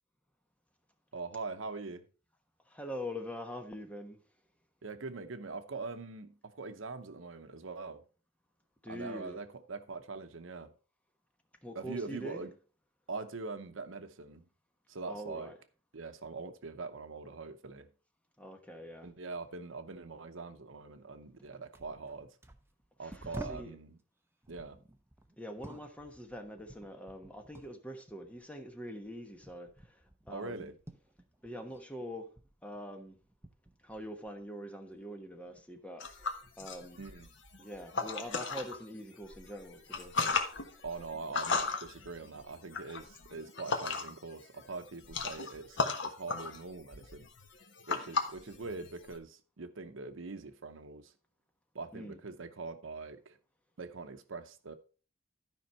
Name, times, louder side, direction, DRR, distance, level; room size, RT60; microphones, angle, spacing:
voice 1, 1.1-2.0 4.8-8.0 8.9-10.7 11.7-12.5 13.1-14.5 14.9-15.5 15.9-17.9 19.0-22.4 23.0-24.0 24.5-24.8 30.3-30.8 37.0-37.3 40.8-47.3 47.9-51.1 51.7-53.4 53.8-54.8, right 3 dB, 75° right, 0.8 m, -43 dB
voice 2, 2.7-4.2 8.8-9.4 11.6-12.4 15.1-15.5 18.4-19.1 23.0-23.8 25.4-30.7 31.4-32.3 32.6-33.2 33.8-36.3 36.6-37.0 37.6-40.1 51.9-52.2, equal, 5° left, 1.2 m, -44 dB
sound 1, 21.3-21.5 21.8-23.8 24.4-27.8 28.1-31.9 32.2-34.5 34.9-35.7 36.4-36.6, right 1 dB, 15° right, 0.8 m, -51 dB
sound 2, 36.0-38.8 39.2-44.3 44.6-49.2, left 4 dB, 65° left, 1.3 m, -36 dB
12.5 x 5.3 x 4.3 m
head